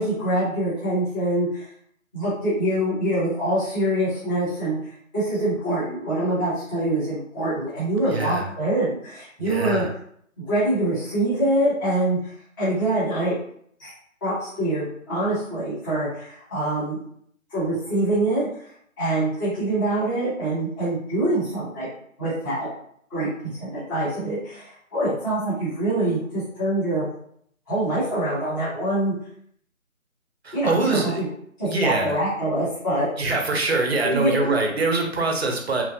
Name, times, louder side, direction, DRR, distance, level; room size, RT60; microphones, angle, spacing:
voice 1, 0.0-1.7 2.1-4.8 5.1-9.8 10.4-12.3 12.6-13.3 13.8-13.9 14.2-17.0 17.5-18.5 19.0-21.9 22.2-22.7 23.1-27.1 27.7-29.1 30.5-31.3 31.6-33.1 34.0-34.6, right 1 dB, 15° left, -13 dB, 1.0 m, -24 dB
voice 2, 8.1-8.4 9.4-9.9 30.4-31.2 31.6-32.2 33.2-35.8, right 2 dB, 50° right, 2 dB, 0.6 m, -24 dB
3.0 x 2.5 x 2.6 m, 0.66 s
figure-of-eight pair, 155°, 41 cm